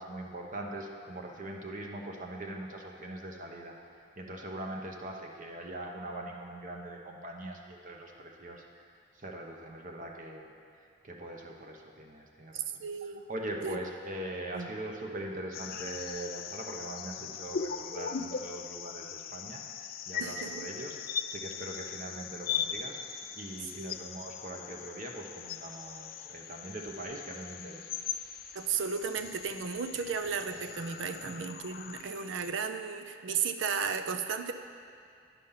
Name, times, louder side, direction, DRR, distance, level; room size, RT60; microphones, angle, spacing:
voice 1, 0.0-3.8 4.2-8.8 9.1-10.5 11.0-12.6 13.0-28.0 31.2-31.3 31.9-32.2, right 1 dB, 45° right, 1 dB, 0.8 m, -42 dB
voice 2, 12.5-13.2 13.6-13.8 14.5-14.7 20.2-20.6 23.8-24.0 28.5-34.5, right 6 dB, 90° right, 8 dB, 0.5 m, -34 dB
sound 1, 15.5-32.5, left 8 dB, 50° left, 0.4 m, -40 dB
9.8 x 5.2 x 5.6 m, 2.4 s
head